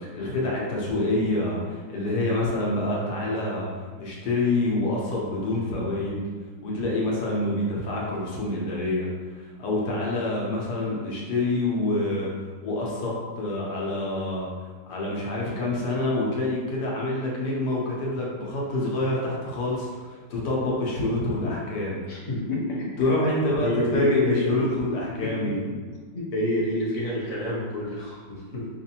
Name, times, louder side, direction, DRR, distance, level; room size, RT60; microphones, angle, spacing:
voice 1, 0.0-3.6 4.0-6.2 6.6-12.3 12.6-14.5 14.9-22.0 23.0-25.6, left 2 dB, 70° left, -4 dB, 1.4 m, -27 dB
voice 2, 22.1-22.9 23.6-24.6 25.2-25.7 26.1-28.7, left 1 dB, 40° left, -6 dB, 0.5 m, -28 dB
5.0 x 2.5 x 2.8 m, 1.4 s
omnidirectional pair, 1.9 m